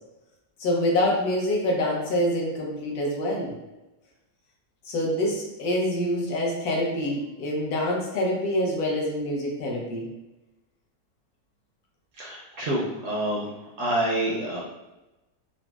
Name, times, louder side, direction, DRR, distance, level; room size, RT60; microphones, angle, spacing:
voice 1, 0.6-3.5 4.9-10.1, left 1 dB, 75° left, -3 dB, 1.2 m, -26 dB
voice 2, 12.2-13.4 13.8-14.6, right 1 dB, 70° right, -4 dB, 0.7 m, -27 dB
3.9 x 2.0 x 2.2 m, 1.0 s
omnidirectional pair, 1.7 m